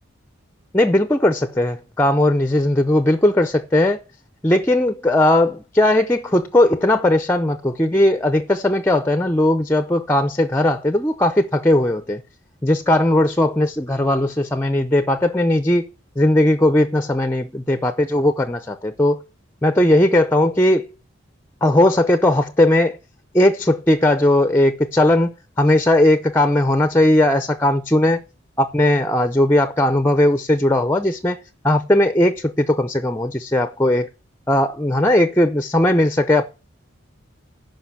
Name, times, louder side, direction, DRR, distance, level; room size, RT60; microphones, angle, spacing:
voice 1, 0.7-4.0 4.4-12.2 12.6-15.9 16.2-19.2 19.6-20.9 21.6-23.0 23.3-28.2 28.6-34.1 34.5-36.4, left 1 dB, 10° left, 0.6 m, -18 dB
11.5 x 5.3 x 7.2 m
head